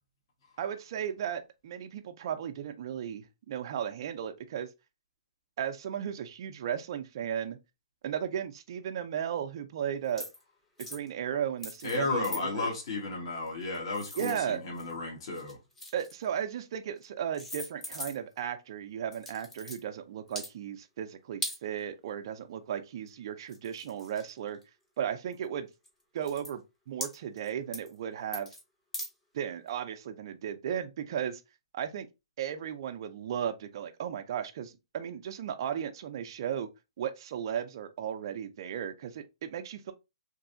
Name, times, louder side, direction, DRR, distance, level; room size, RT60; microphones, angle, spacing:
voice 1, 0.6-4.7 5.6-7.6 8.0-10.3 10.8-12.7 14.2-14.6 15.9-24.6 25.0-25.7 26.1-26.6 26.9-28.5 29.3-31.4 31.7-32.1 32.4-36.7 37.0-39.9, right 9 dB, 50° right, 0.4 m, -35 dB
sound 1, 10.1-10.4 10.8-11.1 11.6-12.0 12.2-12.4 13.5-14.9 15.3-16.3 17.0-17.1 17.3-18.4 19.1-19.8 20.3-20.5 21.4-21.6 23.1-23.2 23.5-24.6 25.3-25.4 25.8-25.9 26.2-26.5 27.0-27.5 27.7-27.9 28.3-28.6 28.9-29.1, left 1 dB, 10° left, 0.7 m, -40 dB
voice 2, 11.8-15.6, left 3 dB, 50° left, 1.2 m, -33 dB
3.1 x 2.6 x 2.5 m
hypercardioid pair, 150°, 3 cm